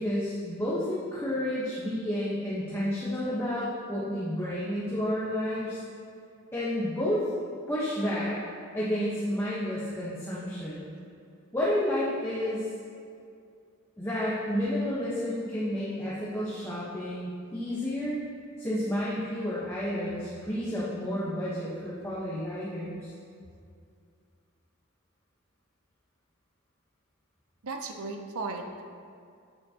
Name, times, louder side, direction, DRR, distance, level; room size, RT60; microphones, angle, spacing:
voice 1, 0.0-5.8 6.5-7.3 7.7-8.4 8.7-10.9 11.5-12.7 14.0-18.2 18.6-23.1, left 1 dB, 10° left, -8 dB, 1.1 m, -30 dB
voice 2, 27.6-28.8, right 3 dB, 80° right, 4 dB, 0.7 m, -37 dB
8.8 x 7.3 x 2.9 m, 2.3 s
head